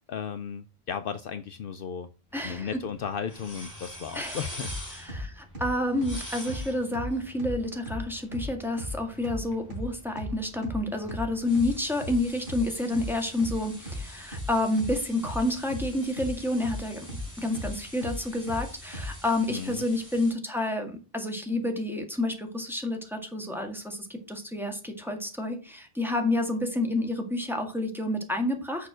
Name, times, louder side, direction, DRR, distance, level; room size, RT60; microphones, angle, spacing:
voice 1, 0.1-2.1 2.4-4.7 19.5-19.8, left 7 dB, 65° left, 11 dB, 0.7 m, -35 dB
sound 1, 2.3-20.3, left 1 dB, 15° left, 3.2 m, -46 dB
voice 2, 2.3-2.7 4.1-4.4 4.9-17.1 17.4-28.9, left 1 dB, ahead, 3 dB, 1.8 m, -29 dB
sound 2, 4.6-19.2, left 1 dB, 60° right, 3.9 m, -36 dB
6.6 x 5.6 x 6.2 m, 0.34 s
omnidirectional pair, 1.1 m